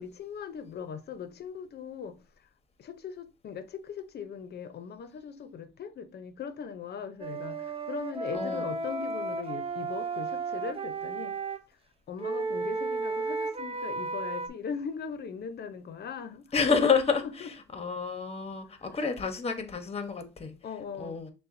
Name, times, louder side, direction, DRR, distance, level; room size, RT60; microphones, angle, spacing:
voice 1, 0.0-2.5 2.8-11.4 12.1-16.5 17.2-17.5 18.7-18.9 20.6-21.2, left 6 dB, 55° left, 0.7 m, -39 dB
Wind instrument woodwind instrument, 7.2-11.6 12.2-14.5, right 3 dB, 30° right, 0.6 m, -33 dB
voice 2, 16.5-17.2 17.7-20.5 21.0-21.3, left 5 dB, 30° left, 0.9 m, -28 dB
6.7 x 2.2 x 2.6 m
cardioid pair, 90°, 20 cm